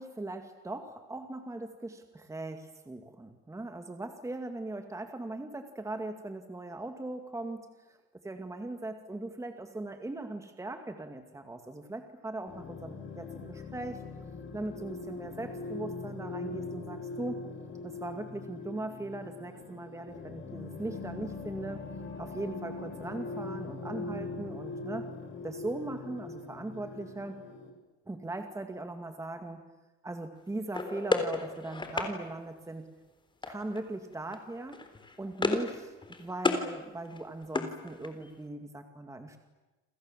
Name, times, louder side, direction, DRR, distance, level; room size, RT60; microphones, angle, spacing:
voice 1, 0.0-8.0 8.2-14.0 14.5-17.4 17.8-21.8 22.2-25.1 25.4-27.4 28.1-29.6 30.0-32.9 33.5-34.8 35.2-35.9 36.2-39.4, right 2 dB, 10° right, 6 dB, 2.3 m, -39 dB
sound 1, 12.5-27.7, left 3 dB, 40° left, 5.7 m, -41 dB
sound 2, 30.7-32.1 33.4-33.8 34.1-34.4 34.7-35.8 36.0-36.7 37.0-38.3, left 3 dB, 15° left, 3.7 m, -32 dB
29.0 x 27.0 x 7.5 m, 1.1 s
cardioid pair, 135°, 31 cm